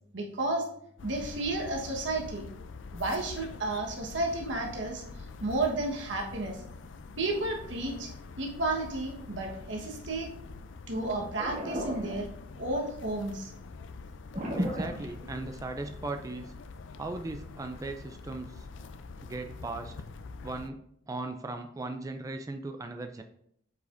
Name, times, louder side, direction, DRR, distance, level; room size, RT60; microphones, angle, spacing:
voice 1, 0.1-0.6 1.0-2.5 2.9-6.6 7.2-8.1 8.4-10.3 10.9-12.3 12.6-13.5, right 2 dB, 80° right, 1 dB, 1.2 m, -32 dB
sound 1, 1.0-20.7, left 4 dB, 85° left, 0.4 m, -45 dB
sound 2, 11.4-12.7 14.3-15.7, equal, 50° right, 1.9 m, -34 dB
voice 2, 14.6-16.5 17.0-18.7 19.2-19.9 20.4-23.2, right 2 dB, 20° right, 7 dB, 0.3 m, -38 dB
8.0 x 4.9 x 2.5 m, 0.70 s
head